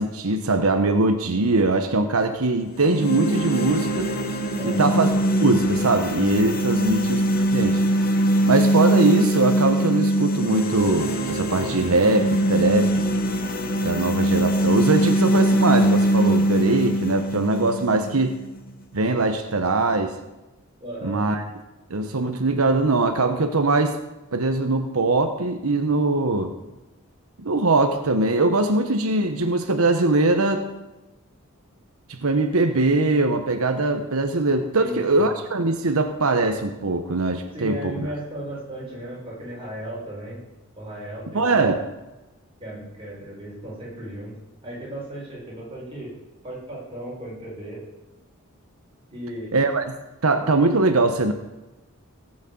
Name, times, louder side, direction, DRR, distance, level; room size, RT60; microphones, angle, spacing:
voice 1, 0.0-4.1 4.6-5.1 5.4-7.2 7.5-7.8 8.4-13.0 13.8-18.4 18.9-20.1 21.0-21.4 21.9-24.0 24.3-26.5 27.4-30.7 32.1-38.1 41.3-41.8 49.5-49.8 50.2-51.3, right 2 dB, 85° right, 7 dB, 1.0 m, -21 dB
sound 1, 2.7-18.7, right 1 dB, 45° left, 1.5 m, -22 dB
voice 2, 4.6-4.9 6.8-7.0 20.8-21.2 34.7-35.3 37.5-40.4 40.8-41.7 42.6-44.3 44.6-46.1 46.4-47.8 49.1-49.5, right 1 dB, 25° right, -5 dB, 5.7 m, -35 dB
17.5 x 6.4 x 7.8 m, 1.1 s
head